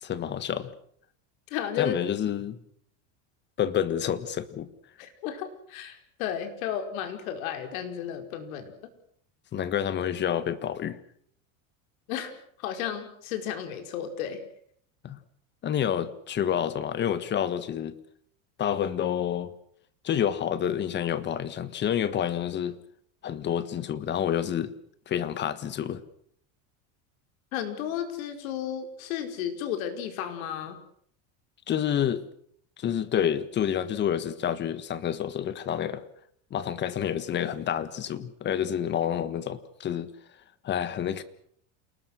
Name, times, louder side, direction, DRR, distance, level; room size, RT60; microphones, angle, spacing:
voice 1, 0.0-0.7 1.8-2.6 3.6-4.7 9.5-11.0 15.0-15.2 15.6-17.9 18.6-19.5 20.0-22.8 23.2-24.7 25.1-26.0 31.7-32.2 32.8-36.0 36.5-40.1 40.6-41.2, left 9 dB, 25° left, 1.5 m, -28 dB
voice 2, 1.5-2.0 5.0-8.7 12.1-12.3 12.6-14.4 27.5-30.8, left 9 dB, 85° left, 5.1 m, -33 dB
29.0 x 20.0 x 6.5 m
cardioid pair, 165°, 40 cm